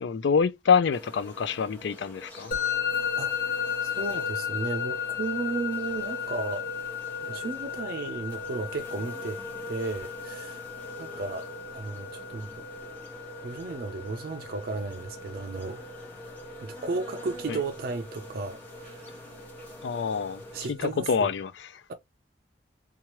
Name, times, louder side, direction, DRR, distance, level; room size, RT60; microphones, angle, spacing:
voice 1, 0.0-2.5 17.5-17.6 19.8-20.4 20.7-21.8, left 6 dB, 80° left, 0.4 m, -26 dB
sound 1, 0.9-20.7, left 1 dB, 10° left, 1.2 m, -45 dB
Musical instrument, 2.5-21.4, left 7 dB, 50° left, 0.7 m, -36 dB
voice 2, 3.2-6.7 7.2-9.4 9.7-10.6 11.0-12.6 13.4-15.8 16.6-19.3 20.5-21.3, right 3 dB, 55° right, 0.4 m, -34 dB
2.9 x 2.3 x 3.0 m
head